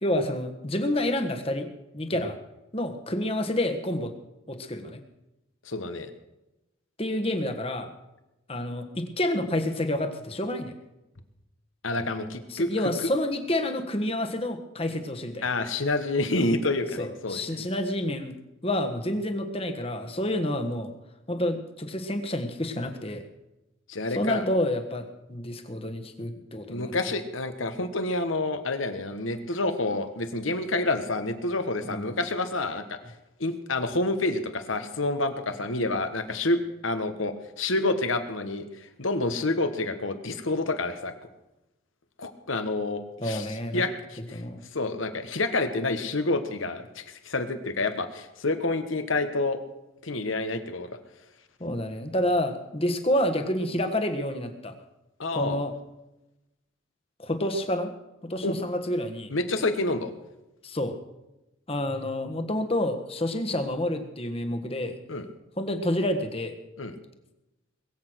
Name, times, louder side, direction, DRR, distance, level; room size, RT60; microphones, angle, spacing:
voice 1, 0.0-1.7 1.9-2.4 2.7-4.1 4.5-5.0 7.0-7.9 8.5-10.7 12.5-15.4 17.0-18.4 18.6-20.9 21.3-23.2 24.1-27.0 31.9-32.1 43.2-43.8 44.3-44.6 51.6-54.7 55.3-55.7 57.2-57.9 58.2-59.3 60.6-61.0 61.7-65.0 65.6-66.5, left 1 dB, 30° left, 6 dB, 1.4 m, -29 dB
voice 2, 5.6-6.1 11.8-12.7 15.4-17.4 23.9-24.4 26.7-33.0 33.4-41.1 42.2-43.5 43.7-44.4 44.7-49.6 50.0-50.9 55.2-55.6 58.4-58.6 59.3-60.1 65.1-65.2 66.8-66.9, left 2 dB, 80° left, 8 dB, 1.5 m, -28 dB
21.5 x 8.2 x 6.4 m, 0.96 s
head